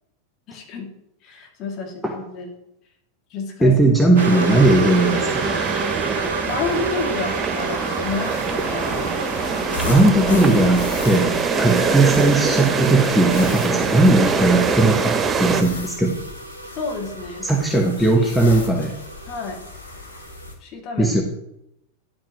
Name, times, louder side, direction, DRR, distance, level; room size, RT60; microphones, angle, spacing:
voice 1, 0.5-0.9 1.2-2.5 3.3-3.8 6.5-9.1 9.6-10.0 11.8-11.9 16.8-18.4 19.2-19.6 20.6-21.1, left 4 dB, 35° left, 0 dB, 2.5 m, -30 dB
voice 2, 3.6-5.5 9.9-16.2 17.4-18.9 21.0-21.2, right 2 dB, ahead, 1 dB, 1.1 m, -18 dB
sound 1, 4.2-15.6, right 5 dB, 20° right, 0.8 m, -23 dB
sound 2, 4.2-20.5, right 3 dB, 80° right, 0.9 m, -33 dB
sound 3, 8.3-20.6, left 3 dB, 70° left, 1.9 m, -36 dB
11.0 x 8.8 x 3.1 m, 0.81 s
figure-of-eight pair, 90°, 0 cm